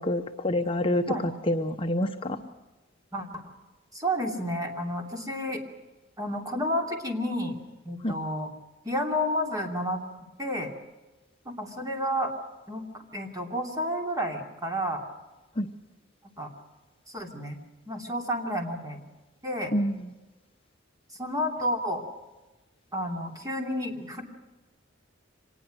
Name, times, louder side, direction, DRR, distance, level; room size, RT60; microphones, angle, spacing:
voice 1, 0.0-2.4 8.0-8.2 15.6-15.7 19.7-20.1, left 1 dB, 30° left, 5 dB, 0.9 m, -27 dB
voice 2, 3.9-5.6 6.2-7.6 7.8-8.5 8.8-10.0 10.4-10.7 11.4-12.3 12.7-15.0 16.4-16.5 17.1-17.6 17.9-19.0 19.4-19.7 21.2-22.0 22.9-24.2, equal, 20° right, 2 dB, 2.9 m, -31 dB
25.5 x 19.5 x 6.4 m, 1.1 s
head